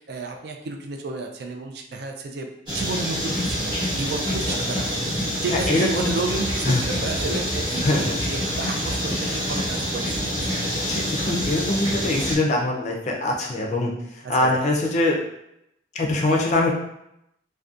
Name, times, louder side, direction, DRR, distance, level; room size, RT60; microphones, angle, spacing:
voice 1, 0.0-5.0 5.4-10.5 14.4-14.8, right 3 dB, 55° right, 3 dB, 0.3 m, -32 dB
sound 1, 2.7-12.3, equal, 25° right, 0.8 m, -26 dB
voice 2, 5.5-6.1 6.6-6.8 7.8-8.1 10.9-15.2 15.9-16.7, left 2 dB, 40° left, 0 dB, 0.4 m, -23 dB
2.6 x 2.1 x 2.4 m, 0.81 s
head